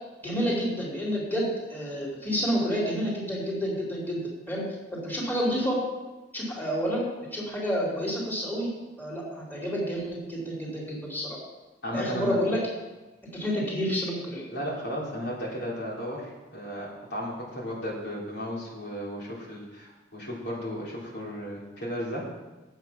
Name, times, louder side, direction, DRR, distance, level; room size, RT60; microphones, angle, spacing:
voice 1, 0.2-4.2 4.5-4.6 4.9-5.8 6.3-7.0 7.3-8.7 9.0-11.4 11.9-12.6 13.3-14.4, equal, 10° left, -6 dB, 3.2 m, -29 dB
voice 2, 11.8-12.4 14.5-22.2, equal, 65° left, -5 dB, 3.4 m, -34 dB
11.0 x 8.2 x 5.8 m, 1.1 s
head